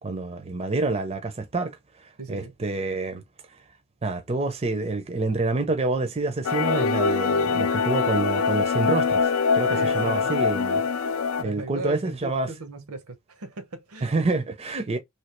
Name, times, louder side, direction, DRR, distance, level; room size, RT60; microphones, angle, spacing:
voice 1, 0.0-1.8 2.3-3.2 4.0-9.3 9.5-10.8 11.4-12.5 14.0-15.0, right 3 dB, 30° right, 0.5 m, -27 dB
voice 2, 2.2-2.5 9.7-10.6 11.4-14.1, right 2 dB, 85° right, 0.9 m, -37 dB
sound 1, 6.4-11.4, left 5 dB, 65° left, 0.4 m, -23 dB
3.1 x 2.7 x 3.0 m
head